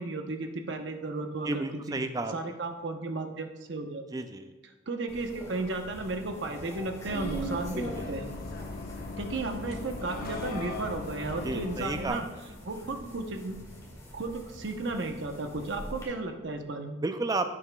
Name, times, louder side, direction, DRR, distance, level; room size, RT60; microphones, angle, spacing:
voice 1, 0.0-2.0 2.3-4.0 4.9-8.3 9.2-12.3 12.6-13.6 14.1-17.0, right 2 dB, 55° right, 5 dB, 0.8 m, -34 dB
voice 2, 1.4-2.3 4.1-4.5 8.0-8.1 11.4-12.2 17.0-17.6, right 2 dB, 20° right, 8 dB, 0.3 m, -32 dB
sound 1, 5.1-16.0, right 1 dB, 15° left, 2.2 m, -43 dB
Bus, 7.1-12.1, left 2 dB, 45° left, 1.0 m, -39 dB
11.0 x 8.5 x 2.3 m, 1.2 s
head